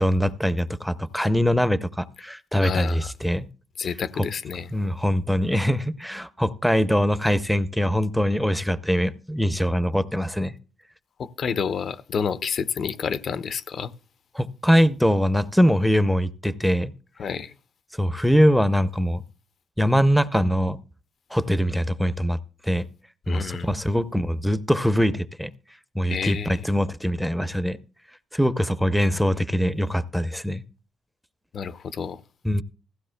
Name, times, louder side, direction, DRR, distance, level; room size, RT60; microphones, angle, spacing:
voice 1, 0.0-3.5 4.2-4.3 4.7-10.5 14.3-16.9 17.9-19.2 19.8-20.8 21.3-22.9 23.3-25.5 25.9-27.8 28.3-30.6 32.4-32.6, equal, ahead, 0.6 m, -22 dB
voice 2, 2.6-3.1 3.8-4.7 11.2-13.9 17.2-17.6 23.3-23.7 26.1-26.7 31.5-32.2, left 6 dB, 55° left, 0.6 m, -29 dB
16.0 x 15.0 x 2.2 m
cardioid pair, 90°, 0 cm